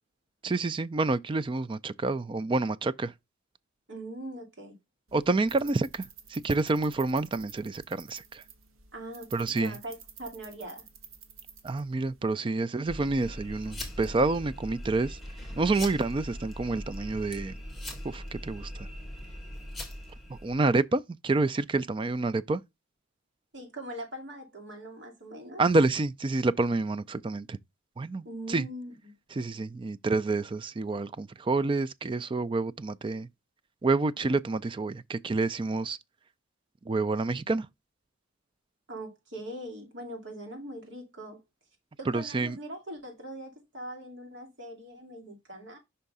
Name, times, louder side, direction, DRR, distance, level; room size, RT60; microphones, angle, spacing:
voice 1, 0.4-3.1 5.1-8.4 9.3-9.8 11.6-15.2 15.6-17.5 18.0-18.9 20.3-22.6 25.6-27.6 28.0-28.7 29.3-33.3 33.8-36.0 36.9-37.7 42.1-42.6, right 3 dB, 25° right, 0.3 m, -28 dB
voice 2, 3.9-4.8 8.9-10.8 23.5-25.6 28.2-29.1 38.9-41.4 42.0-45.8, right 1 dB, 60° right, 2.4 m, -41 dB
sound 1, 5.1-12.3, right 7 dB, 80° right, 1.2 m, -51 dB
sound 2, 12.8-20.6, left 1 dB, ahead, 1.7 m, -40 dB
5.6 x 3.5 x 5.3 m
head